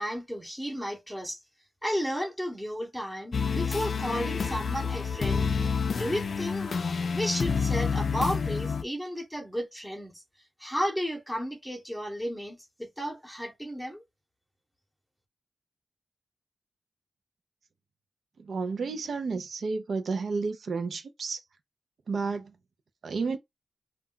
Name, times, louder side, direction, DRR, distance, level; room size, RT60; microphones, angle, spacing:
voice 1, 0.0-1.4 1.8-5.5 5.9-6.8 7.1-10.2 10.6-14.0, equal, ahead, 0.8 m, -33 dB
sound 1, 3.3-8.8, left 5 dB, 60° left, 0.3 m, -28 dB
voice 2, 18.4-21.4 22.1-22.5 23.0-23.4, right 4 dB, 75° right, 0.4 m, -31 dB
2.2 x 2.2 x 3.7 m
wide cardioid pair, 140°, 0 cm